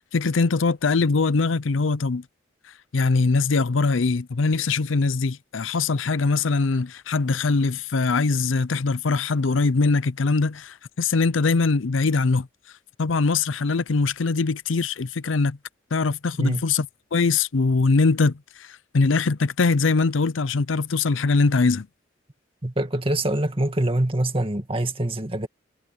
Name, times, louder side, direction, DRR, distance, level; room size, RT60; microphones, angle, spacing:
voice 1, 0.1-2.2 2.9-12.5 13.0-15.6 15.9-16.9 17.1-21.9, left 4 dB, 85° left, 0.6 m, -22 dB
voice 2, 22.6-25.5, right 1 dB, 30° right, 2.1 m, -24 dB
head